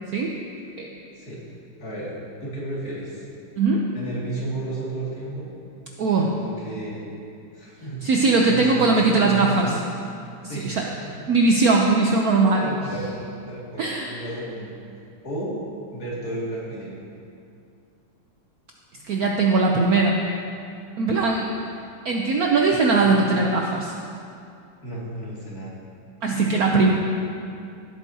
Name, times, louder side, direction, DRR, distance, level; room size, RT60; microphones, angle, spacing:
voice 1, 1.8-2.1 2.4-3.3 3.9-5.5 6.1-7.0 7.5-9.8 10.4-11.3 12.6-13.1 13.5-14.7 15.2-15.5 15.9-17.0 24.8-25.8, right 1 dB, 45° left, -7 dB, 2.6 m, -33 dB
voice 2, 3.6-3.9 6.0-6.3 8.0-9.8 10.4-10.8 11.3-12.7 13.8-14.1 19.1-20.2 21.0-21.5 22.0-23.9 26.2-26.9, right 3 dB, 85° right, 0 dB, 0.8 m, -20 dB
16.0 x 8.3 x 2.8 m, 2.5 s
omnidirectional pair, 2.4 m